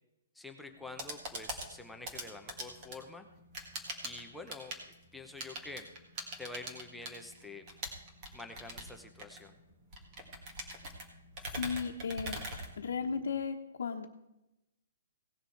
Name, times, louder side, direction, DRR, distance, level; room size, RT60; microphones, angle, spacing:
voice 1, 0.4-3.2 4.0-4.8 5.1-5.9 6.4-7.6 8.3-9.5, left 3 dB, ahead, 3 dB, 0.6 m, -47 dB
sound 1, 0.7-13.3, right 1 dB, 20° right, 1.8 m, -44 dB
voice 2, 11.5-12.4 12.8-14.1, left 5 dB, 65° left, -2 dB, 1.2 m, -35 dB
17.5 x 6.6 x 4.7 m, 0.90 s
hypercardioid pair, 180°, 0 cm